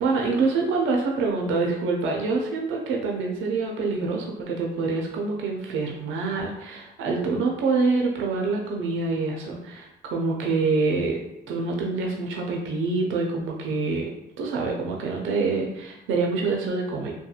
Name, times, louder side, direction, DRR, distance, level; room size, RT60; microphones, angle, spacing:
voice 1, 0.0-14.1 14.4-17.1, right 3 dB, 85° right, 0 dB, 0.5 m, -26 dB
2.8 x 2.2 x 2.3 m, 0.86 s
cardioid pair, 90°, 20 cm